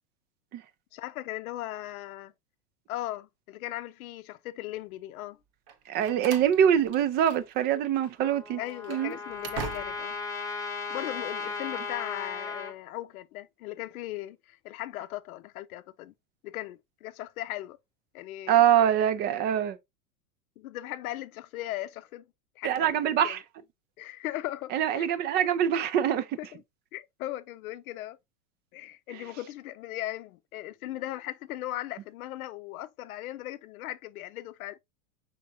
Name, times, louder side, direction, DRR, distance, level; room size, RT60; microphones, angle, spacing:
voice 1, 0.9-2.3 2.9-5.4 8.6-10.2 10.9-16.1 16.4-17.8 18.1-18.6 20.6-22.2 22.6-23.4 24.0-25.1 26.4-26.6 26.9-28.2 28.7-34.8, left 15 dB, 70° left, 0.6 m, -38 dB
Slam, 5.7-7.7 7.9-8.1 8.6-10.2, right 7 dB, 55° right, 1.0 m, -42 dB
voice 2, 5.9-8.6 8.9-9.1 18.5-19.8 22.6-23.4 24.7-26.4, right 9 dB, 25° right, 0.3 m, -24 dB
Trumpet, 8.2-12.7, left 4 dB, 5° left, 1.0 m, -36 dB
5.8 x 3.5 x 2.6 m
hypercardioid pair, 105°, 44 cm